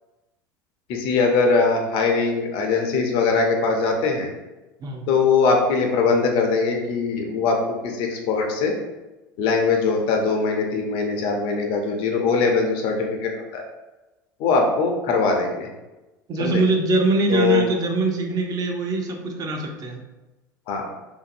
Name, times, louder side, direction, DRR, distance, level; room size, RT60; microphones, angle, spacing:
voice 1, 0.9-4.3 5.1-8.8 9.4-13.6 14.4-15.7 16.4-16.6 17.3-17.6 20.7-20.9, left 4 dB, 50° left, 2 dB, 0.6 m, -21 dB
voice 2, 16.3-20.0, right 3 dB, 35° right, 2 dB, 0.6 m, -23 dB
2.7 x 2.5 x 2.5 m, 1.1 s
hypercardioid pair, 80°, 12 cm